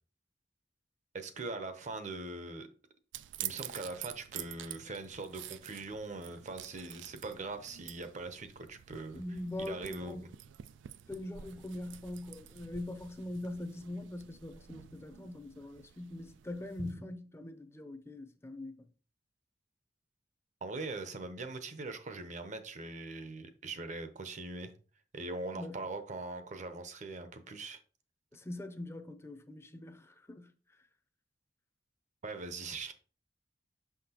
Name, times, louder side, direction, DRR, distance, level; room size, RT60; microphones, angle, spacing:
voice 1, 1.1-2.7 3.4-9.2 9.6-10.3 16.8-17.0 20.6-24.7 25.1-27.8 32.2-32.9, right 3 dB, 40° right, 0.8 m, -41 dB
sound 1, 3.1-16.9, right 12 dB, 85° right, 0.3 m, -48 dB
voice 2, 9.1-10.3 11.1-18.9 25.5-25.8 28.3-30.8, left 1 dB, 15° left, 0.6 m, -42 dB
5.9 x 5.8 x 2.9 m
head